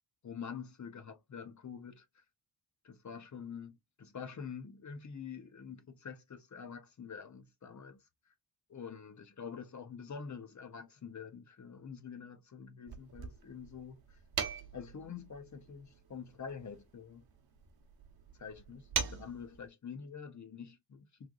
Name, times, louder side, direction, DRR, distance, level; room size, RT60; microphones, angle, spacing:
voice 1, 0.2-2.0 2.8-8.0 8.7-14.2 14.7-17.2 18.4-21.3, left 6 dB, 40° left, 0.7 m, -46 dB
sound 1, 12.9-19.7, right 6 dB, 55° right, 0.9 m, -42 dB
3.5 x 3.3 x 2.3 m
wide cardioid pair, 155°, 44 cm